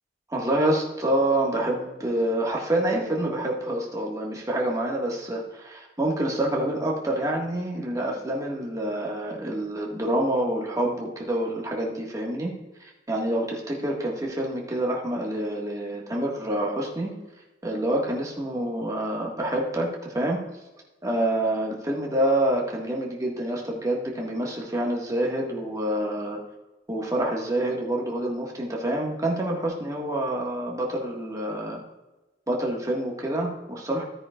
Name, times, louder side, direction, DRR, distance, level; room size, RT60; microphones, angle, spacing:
voice 1, 0.3-12.5 12.8-17.1 17.6-20.4 21.0-26.4 26.9-31.8 32.5-34.0, right 1 dB, 20° right, -2 dB, 1.7 m, -27 dB
13.0 x 9.7 x 2.4 m, 1.0 s
head